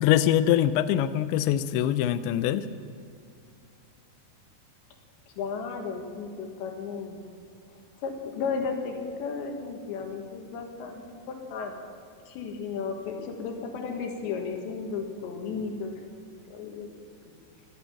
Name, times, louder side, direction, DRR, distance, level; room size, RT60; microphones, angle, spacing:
voice 1, 0.0-2.7, left 11 dB, 85° left, 12 dB, 2.5 m, -23 dB
voice 2, 5.4-7.2 8.0-11.7 12.3-15.9 16.5-16.9, left 5 dB, 70° left, 3 dB, 3.7 m, -34 dB
17.5 x 11.5 x 7.0 m, 2.4 s
omnidirectional pair, 5.7 m